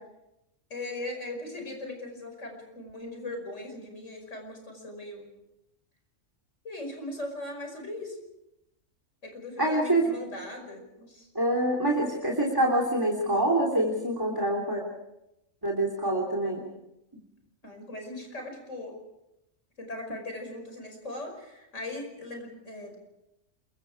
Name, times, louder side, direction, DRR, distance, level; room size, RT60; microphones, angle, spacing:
voice 1, 0.7-5.3 6.6-8.2 9.2-11.3 17.6-19.0 19.8-23.0, left 2 dB, 75° left, 3 dB, 5.8 m, -39 dB
voice 2, 9.6-10.1 11.3-14.8 15.6-16.6, right 1 dB, 15° right, 0 dB, 3.3 m, -25 dB
27.5 x 23.0 x 4.8 m, 0.87 s
omnidirectional pair, 1.3 m